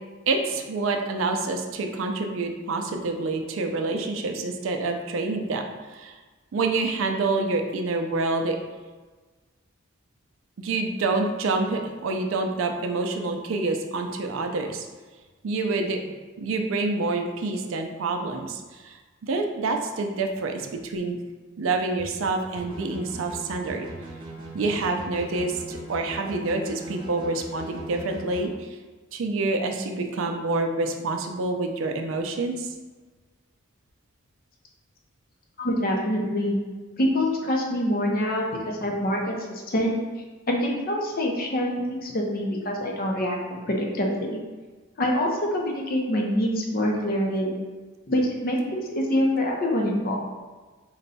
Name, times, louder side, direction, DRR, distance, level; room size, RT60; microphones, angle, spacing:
voice 1, 0.3-5.6 5.9-6.2 6.5-8.6 10.6-14.9 15.4-16.0 16.4-21.2 21.6-23.9 24.5-28.7 29.1-32.7, right 3 dB, 75° right, 4 dB, 0.4 m, -27 dB
sound 1, 22.5-28.4, right 1 dB, 25° right, 0.8 m, -40 dB
voice 2, 35.6-36.6 37.0-40.0 40.5-44.4 45.0-47.5 48.1-50.2, left 1 dB, 45° left, 0 dB, 0.6 m, -25 dB
3.9 x 2.2 x 4.0 m, 1.3 s
head